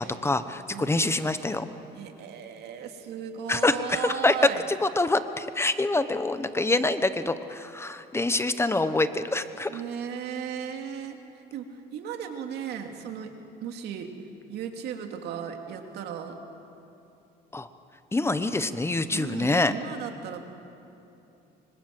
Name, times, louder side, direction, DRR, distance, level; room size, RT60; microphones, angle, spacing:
voice 1, 0.0-1.7 3.5-4.3 4.8-9.8 17.5-17.7 18.1-19.7, left 2 dB, 15° left, 11 dB, 1.0 m, -26 dB
voice 2, 0.7-1.5 1.9-4.6 9.7-11.2 11.5-11.7 11.9-13.3 13.6-14.1 14.5-16.4 19.1-20.4, right 8 dB, 75° right, 4 dB, 2.7 m, -36 dB
26.0 x 25.0 x 7.8 m, 2.8 s
cardioid pair, 110°, 17 cm